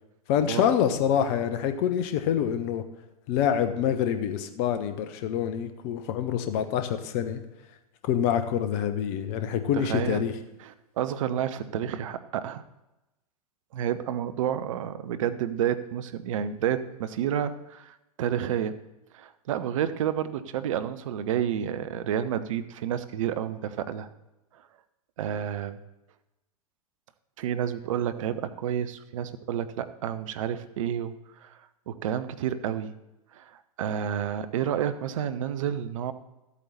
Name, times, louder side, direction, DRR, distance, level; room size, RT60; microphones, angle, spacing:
voice 1, 0.3-2.8 3.3-7.4 8.0-10.3, left 9 dB, 40° left, 9 dB, 1.0 m, -26 dB
voice 2, 9.7-10.3 10.6-12.6 13.7-18.8 19.1-24.1 25.2-25.8 27.4-31.6 31.9-33.0 33.3-33.5 33.8-36.1, right 9 dB, 55° right, 12 dB, 0.8 m, -30 dB
13.0 x 8.4 x 4.2 m, 0.97 s
figure-of-eight pair, 100°, 20 cm